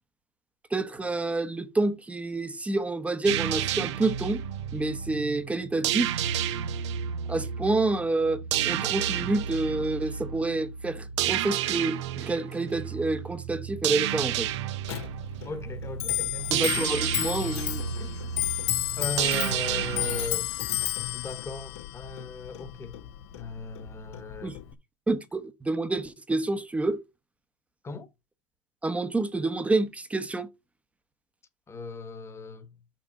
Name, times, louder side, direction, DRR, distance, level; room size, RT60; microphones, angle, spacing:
voice 1, 0.7-4.4 4.7-6.1 7.3-14.5 16.5-17.8 24.4-24.5 25.1-27.0 28.8-30.5, right 2 dB, 10° right, 0.9 m, -28 dB
sound 1, 3.3-20.3, right 10 dB, 80° right, 0.9 m, -31 dB
Clock, 14.8-24.7, left 13 dB, 75° left, 1.2 m, -32 dB
voice 2, 15.4-16.6 18.0-18.1 19.0-20.5 21.1-23.0 23.3-24.6 27.8-28.1 31.7-32.7, left 3 dB, 20° left, 1.3 m, -37 dB
6.3 x 6.2 x 5.3 m
supercardioid pair, 130°, 15 cm